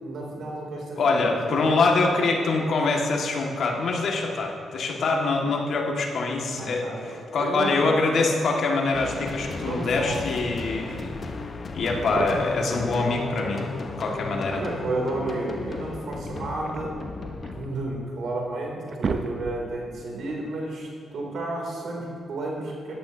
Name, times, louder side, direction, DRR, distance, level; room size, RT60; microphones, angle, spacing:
voice 1, 0.0-1.7 6.5-7.9 9.6-10.2 11.0-11.1 14.5-17.0 17.5-22.9, right 2 dB, 75° right, -2 dB, 3.0 m, -32 dB
voice 2, 1.0-11.2 11.7-13.6 14.0-14.6, left 3 dB, 70° left, 0 dB, 1.9 m, -24 dB
sound 1, 8.9-17.7, left 3 dB, 50° left, 1.1 m, -35 dB
sound 2, 12.0-12.7 14.1-15.0 16.3-17.6 18.2-18.3 18.7-19.8, right 4 dB, 55° right, 0.8 m, -33 dB
16.0 x 11.5 x 2.8 m, 2.3 s
supercardioid pair, 60°, 0 cm